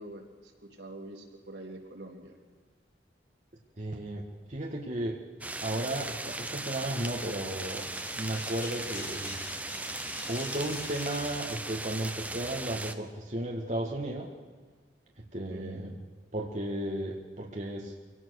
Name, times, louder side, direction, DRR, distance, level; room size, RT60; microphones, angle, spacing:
voice 1, 0.0-2.4 15.5-15.8, right 1 dB, 75° right, 1 dB, 3.3 m, -45 dB
voice 2, 3.8-4.2 4.5-5.2 5.6-7.9 8.2-9.4 10.3-14.3 15.3-16.0 16.3-18.0, right 1 dB, 40° right, 0 dB, 1.8 m, -34 dB
sound 1, 5.4-12.9, right 2 dB, 10° right, 0.8 m, -38 dB
sound 2, 7.7-12.1, left 3 dB, 50° left, 5.8 m, -46 dB
24.5 x 18.0 x 6.5 m, 1.5 s
head